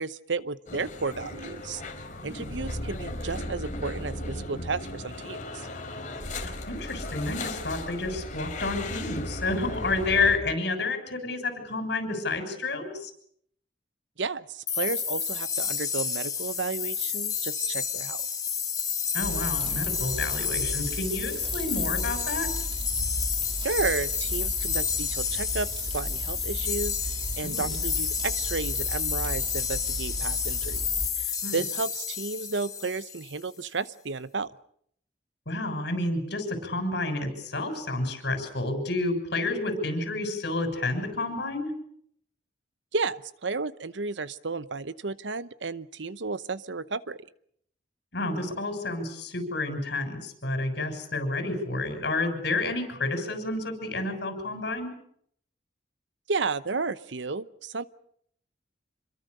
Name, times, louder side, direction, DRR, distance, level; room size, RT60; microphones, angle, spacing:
voice 1, 0.0-1.8 2.2-5.7 14.2-18.2 23.6-27.0 27.4-30.8 31.2-34.5 42.9-47.2 56.3-57.8, right 4 dB, 85° right, 16 dB, 0.9 m, -32 dB
sound 1, 0.7-10.4, left 1 dB, 45° left, 3.7 m, -36 dB
voice 2, 6.4-13.1 19.1-22.5 27.4-27.8 31.4-31.6 35.5-41.7 48.1-54.9, left 2 dB, 65° left, 6 dB, 6.9 m, -30 dB
sound 2, 14.7-33.4, left 7 dB, 20° left, 3.2 m, -30 dB
sound 3, 19.2-31.1, right 1 dB, 30° right, 3.7 m, -36 dB
27.0 x 23.0 x 6.8 m, 0.67 s
head